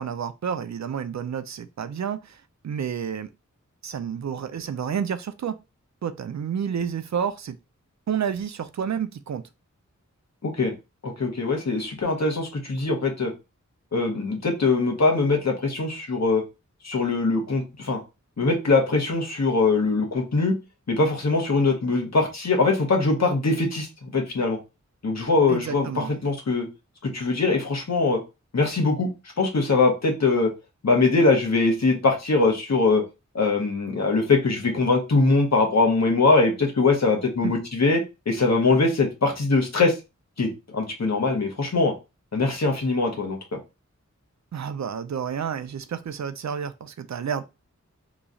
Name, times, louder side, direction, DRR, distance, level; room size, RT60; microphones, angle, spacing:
voice 1, 0.0-3.3 3.8-5.6 6.0-7.5 8.1-9.4 25.5-26.2 37.4-37.5 44.5-47.4, right 7 dB, 65° right, 0.4 m, -30 dB
voice 2, 10.4-10.7 11.0-13.3 13.9-16.4 16.8-18.0 18.4-20.6 20.9-24.6 25.0-26.7 27.0-28.2 28.5-29.1 29.4-30.5 30.8-33.0 33.3-39.9 40.4-41.9 42.3-43.4, left 3 dB, 60° left, 1.1 m, -22 dB
3.0 x 2.3 x 3.8 m
wide cardioid pair, 75°, 30 cm